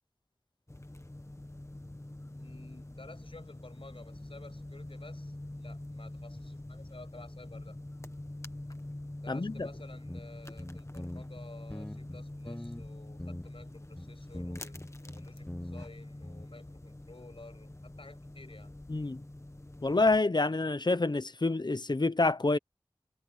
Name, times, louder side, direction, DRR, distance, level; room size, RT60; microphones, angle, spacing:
sound 1, 0.7-20.2, left 1 dB, 30° left, 1.5 m, -45 dB
voice 1, 2.2-7.8 9.2-18.8, left 3 dB, 80° left, 6.9 m, -53 dB
voice 2, 9.3-9.7 18.9-19.2 19.8-22.6, left 3 dB, 55° left, 0.8 m, -27 dB
sound 2, 10.1-10.2 10.6-11.4 11.7-12.9 13.2-13.7 14.0-15.9 16.2-16.5, left 1 dB, 15° left, 0.7 m, -42 dB
wide cardioid pair, 45°, 9 cm